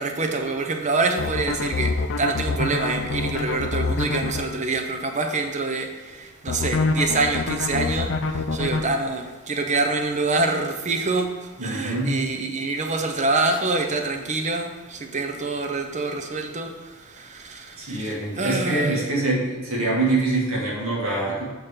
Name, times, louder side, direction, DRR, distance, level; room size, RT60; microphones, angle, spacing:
voice 1, 0.0-19.0, right 3 dB, 35° right, 4 dB, 0.7 m, -26 dB
sound 1, 1.2-4.4 6.5-8.8, left 3 dB, 55° left, 0.5 m, -25 dB
voice 2, 11.6-12.1 17.8-21.5, right 2 dB, 65° right, -4 dB, 2.1 m, -24 dB
6.1 x 4.3 x 5.0 m, 1.3 s
head